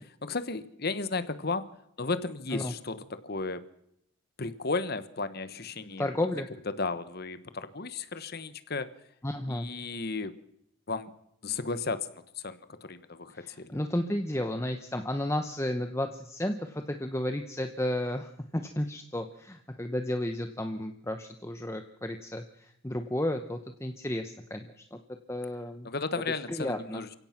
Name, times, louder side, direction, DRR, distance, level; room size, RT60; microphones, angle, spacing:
voice 1, 0.2-1.7 2.0-3.6 4.4-6.3 6.7-8.9 9.5-10.4 10.9-11.1 11.4-12.1 12.4-13.7 25.8-27.1, left 3 dB, 45° left, 13 dB, 1.1 m, -34 dB
voice 2, 6.0-6.5 9.2-9.7 13.3-25.0 25.3-25.9 26.5-27.0, left 1 dB, 15° left, 6 dB, 1.0 m, -33 dB
29.0 x 17.0 x 6.0 m, 0.75 s
head